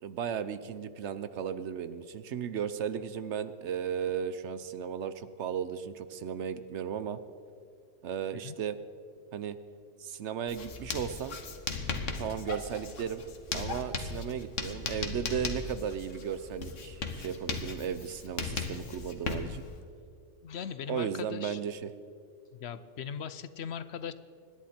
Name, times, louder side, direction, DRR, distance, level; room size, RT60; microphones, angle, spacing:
voice 1, 0.0-7.2 8.0-8.8 9.3-9.6 10.0-11.4 12.2-13.2 13.5-19.6 20.9-21.9, right 8 dB, 70° right, 13 dB, 1.0 m, -35 dB
Writing, 10.5-19.8, left 4 dB, 90° left, 1.5 m, -37 dB
voice 2, 20.4-21.6 22.5-24.1, left 7 dB, 65° left, 13 dB, 0.9 m, -39 dB
25.5 x 10.5 x 4.4 m, 2.4 s
omnidirectional pair, 1.2 m